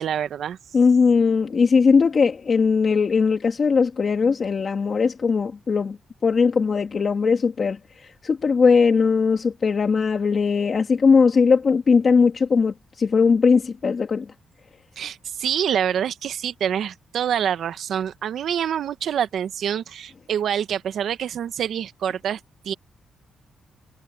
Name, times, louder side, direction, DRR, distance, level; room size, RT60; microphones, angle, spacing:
voice 1, 0.0-0.6 15.0-22.4 22.6-22.7, right 9 dB, 70° right, 1.1 m, -26 dB
voice 2, 0.7-6.0 6.2-14.3, left 5 dB, 40° left, 2.4 m, -19 dB
cardioid pair, 115°, 0 cm